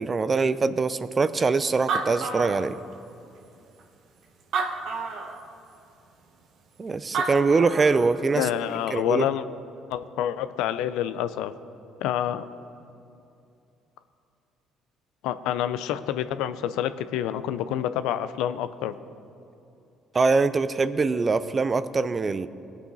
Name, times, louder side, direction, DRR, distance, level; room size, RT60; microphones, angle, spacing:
voice 1, 0.0-2.8 6.8-8.5 8.9-9.3 20.1-22.5, right 4 dB, 35° right, 14 dB, 0.6 m, -23 dB
Animal, 1.4-1.5 1.7-3.1 3.8-3.9 4.4-5.4 6.9-7.0 7.1-8.1, right 4 dB, 65° right, 1.3 m, -29 dB
voice 2, 8.3-9.4 9.9-11.5 12.0-12.5 15.2-18.9, left 11 dB, 80° left, 12 dB, 0.5 m, -27 dB
19.0 x 8.3 x 4.0 m, 2.7 s
hypercardioid pair, 60°, 0 cm